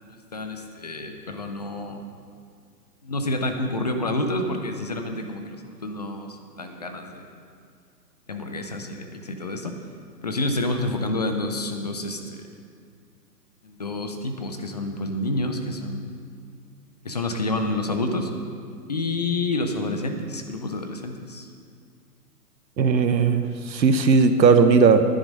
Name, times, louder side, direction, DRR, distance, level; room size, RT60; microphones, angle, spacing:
voice 1, 0.0-2.0 3.0-7.2 8.3-9.7 10.2-12.4 13.6-16.2 17.0-18.3 18.9-21.5, left 2 dB, 25° left, 5 dB, 0.4 m, -29 dB
voice 2, 22.8-25.1, right 5 dB, 85° right, 9 dB, 1.0 m, -17 dB
10.5 x 9.8 x 5.3 m, 2.2 s
hypercardioid pair, 145°, 50 cm